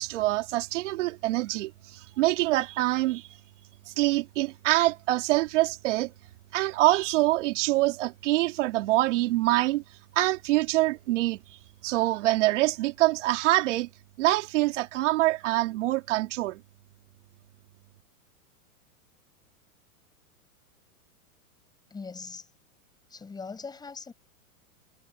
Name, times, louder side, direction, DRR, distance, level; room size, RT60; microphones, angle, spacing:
voice 1, 0.0-3.3 3.9-6.1 6.5-9.8 10.1-13.9 14.2-16.6, right 17 dB, 55° right, 3.2 m, -25 dB
voice 2, 21.9-22.5 23.1-24.1, left 4 dB, 10° left, 5.6 m, -40 dB
supercardioid pair, 155°, 43 cm